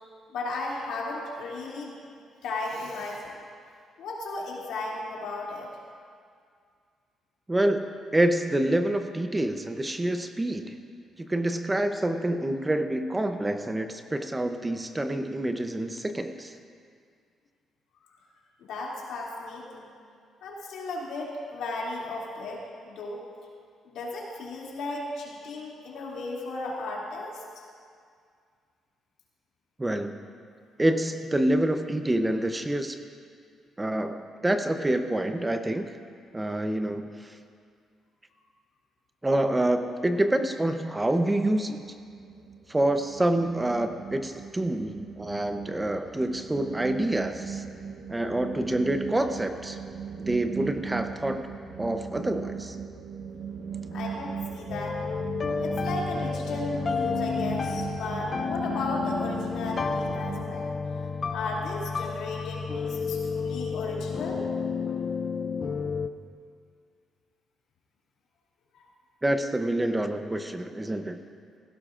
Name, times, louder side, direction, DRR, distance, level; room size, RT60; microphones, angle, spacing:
voice 1, 0.3-2.0 2.4-3.2 4.0-5.7 18.7-19.9 20.4-23.2 23.8-27.6 53.9-55.0 55.6-60.6 61.3-64.4 68.7-68.8, left 2 dB, 85° left, -4 dB, 2.7 m, -35 dB
voice 2, 7.5-10.7 11.2-16.5 29.8-30.2 30.8-33.0 33.8-35.9 36.3-37.3 39.2-41.8 42.7-47.6 48.1-49.8 50.2-51.4 51.8-52.8 69.2-71.2, right 1 dB, 15° right, 7 dB, 0.7 m, -27 dB
sound 1, 41.7-60.5, right 6 dB, 75° right, 1.1 m, -39 dB
sound 2, 54.7-66.1, left 5 dB, 40° left, 0.6 m, -31 dB
16.5 x 16.0 x 2.5 m, 2.2 s
cardioid pair, 90°, 0 cm